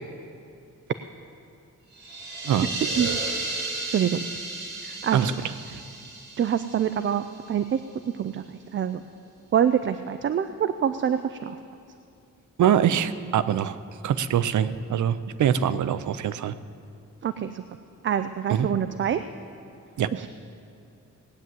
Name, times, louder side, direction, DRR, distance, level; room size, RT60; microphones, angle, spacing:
sound 1, 1.9-7.6, right 2 dB, 65° right, 2.5 m, -33 dB
voice 1, 3.9-4.2 4.8-5.3 6.4-7.8 8.2-8.4 8.7-9.0 9.5-11.6 17.2-17.6 18.0-19.2 20.1-20.3, right 9 dB, 45° right, 11 dB, 0.4 m, -25 dB
voice 2, 12.6-13.8 14.0-16.5 18.5-18.7 20.0-20.1, right 9 dB, 85° right, 13 dB, 0.6 m, -23 dB
18.0 x 9.5 x 7.6 m, 2.5 s
wide cardioid pair, 175°, 29 cm